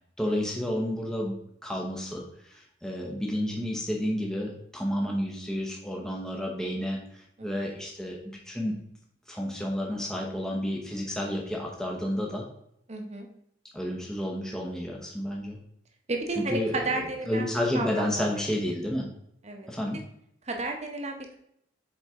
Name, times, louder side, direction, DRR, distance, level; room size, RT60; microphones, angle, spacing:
voice 1, 0.2-1.3 1.6-8.8 9.3-12.4 13.7-15.6 16.4-19.1 19.7-20.0, equal, 5° left, -1 dB, 0.9 m, -31 dB
voice 2, 12.9-13.3 16.1-17.4 17.7-18.3 19.4-19.7 20.4-21.4, right 2 dB, 35° right, 3 dB, 1.0 m, -32 dB
7.2 x 4.8 x 3.6 m, 0.73 s
head